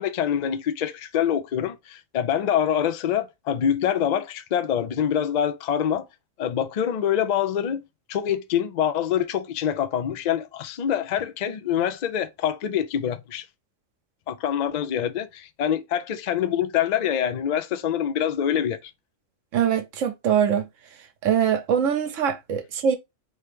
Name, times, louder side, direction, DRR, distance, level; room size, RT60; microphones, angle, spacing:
voice 1, 0.0-6.1 6.4-7.8 8.1-13.4 14.3-18.9, left 9 dB, 75° left, 0.4 m, -25 dB
voice 2, 19.5-20.7 21.2-23.0, right 8 dB, 75° right, 1.1 m, -23 dB
4.3 x 3.2 x 3.3 m
omnidirectional pair, 1.3 m